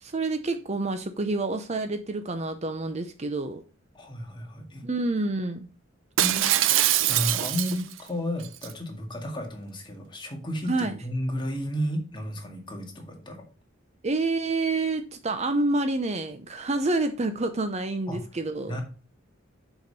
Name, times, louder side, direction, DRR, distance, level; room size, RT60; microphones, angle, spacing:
voice 1, 0.0-3.6 4.8-5.7 10.7-11.0 14.0-18.8, right 2 dB, 35° right, 0.6 m, -28 dB
voice 2, 3.9-4.9 6.2-6.5 7.0-13.4 18.1-18.2 18.7-18.8, equal, 25° left, 1.9 m, -32 dB
Shatter, 6.2-8.0 8.4-8.7, right 13 dB, 70° right, 0.5 m, -23 dB
6.7 x 5.0 x 5.4 m
head